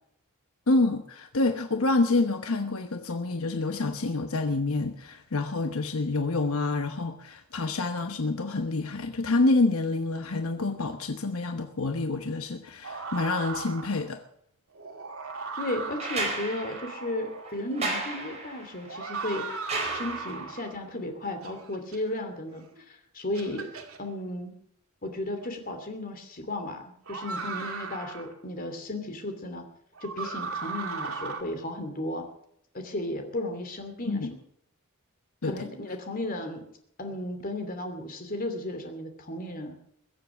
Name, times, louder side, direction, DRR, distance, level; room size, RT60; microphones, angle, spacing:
voice 1, 0.7-14.2 34.1-34.3 35.4-35.5, left 3 dB, 80° left, 7 dB, 1.0 m, -27 dB
sound 1, 12.8-14.1 14.7-17.6 18.8-20.8 21.4-22.0 22.8-22.9 23.3-24.0 25.4-25.5 27.1-28.3 29.9-31.4, right 4 dB, 80° right, 2.3 m, -37 dB
voice 2, 15.6-19.5 19.9-23.7 24.0-24.5 25.0-26.8 27.1-29.6 30.0-32.2 32.7-34.2 35.4-36.6 37.0-39.7, left 1 dB, 45° left, 5 dB, 2.8 m, -34 dB
sound 2, 16.0-20.6 22.2-22.3, right 2 dB, 30° right, 4.6 m, -35 dB
22.0 x 7.5 x 7.0 m, 0.70 s
head